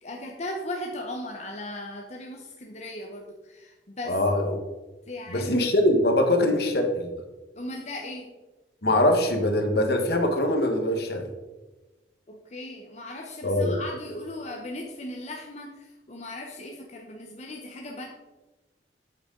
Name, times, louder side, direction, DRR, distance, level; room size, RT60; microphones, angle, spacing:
voice 1, 0.0-4.2 5.1-5.5 7.5-8.3 12.3-18.0, left 1 dB, 40° left, 0 dB, 0.9 m, -37 dB
voice 2, 4.0-4.6 5.3-7.2 8.8-11.3 13.4-13.8, left 1 dB, 60° left, 4 dB, 1.4 m, -23 dB
8.8 x 8.2 x 3.8 m, 1.2 s
head